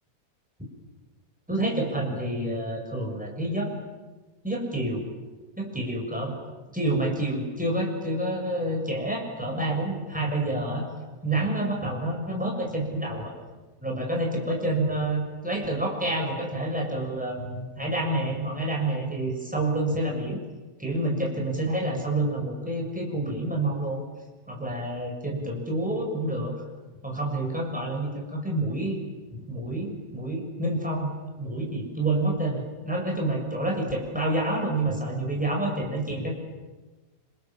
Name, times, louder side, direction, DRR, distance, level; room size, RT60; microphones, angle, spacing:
voice 1, 1.5-3.7 4.4-5.1 5.6-6.3 6.7-10.9 11.2-13.3 13.8-20.4 20.8-24.0 24.5-26.5 27.0-29.0 29.3-31.1 31.4-36.3, right 1 dB, 5° right, 0 dB, 7.1 m, -28 dB
29.0 x 27.0 x 7.5 m, 1.3 s
omnidirectional pair, 1.8 m